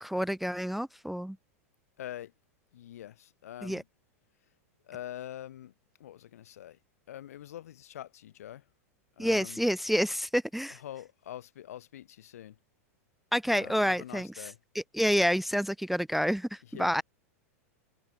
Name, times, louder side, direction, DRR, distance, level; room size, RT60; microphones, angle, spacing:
voice 1, 0.0-1.4 3.6-3.8 9.2-10.8 13.3-17.0, equal, ahead, 0.4 m, -29 dB
voice 2, 2.0-2.3 2.7-3.8 4.8-5.7 6.0-6.8 7.1-8.6 9.2-9.6 10.7-12.6 13.5-14.6 16.7-16.9, left 12 dB, 75° left, 2.8 m, -44 dB
hypercardioid pair, 105°, 8 cm